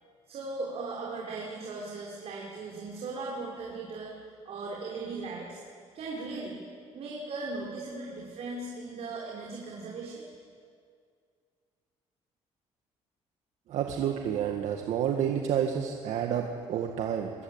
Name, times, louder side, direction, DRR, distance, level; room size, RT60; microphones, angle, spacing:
voice 1, 0.3-4.1 4.4-5.6 5.9-6.6 6.9-10.3, right 3 dB, 60° right, -3 dB, 5.9 m, -38 dB
voice 2, 13.7-17.3, right 9 dB, 75° right, 3 dB, 2.1 m, -29 dB
25.0 x 24.0 x 8.9 m, 2.1 s
cardioid pair, 110°, 12 cm